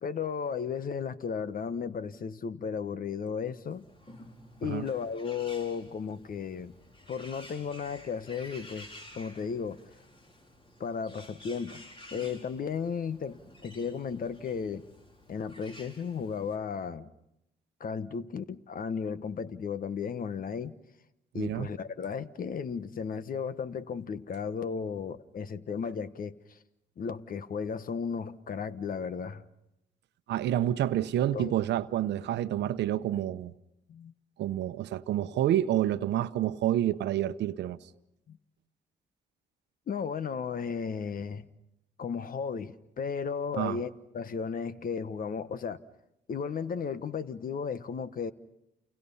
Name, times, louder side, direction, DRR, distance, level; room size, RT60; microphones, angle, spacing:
voice 1, 0.0-3.9 4.6-6.7 7.1-8.9 9.1-9.8 10.8-11.8 12.1-14.9 15.3-17.1 17.8-20.7 21.3-26.6 27.0-29.4 31.3-31.5 33.9-34.1 38.3-38.4 39.9-41.5 42.0-45.8 46.3-48.3, left 6 dB, 55° left, 1.3 m, -34 dB
Bird, 3.6-16.6, left 1 dB, 30° left, 5.1 m, -52 dB
voice 2, 21.3-21.7 30.3-33.5 34.4-37.8 43.5-43.8, right 12 dB, 80° right, 0.9 m, -28 dB
30.0 x 29.0 x 5.6 m
cardioid pair, 80°, 18 cm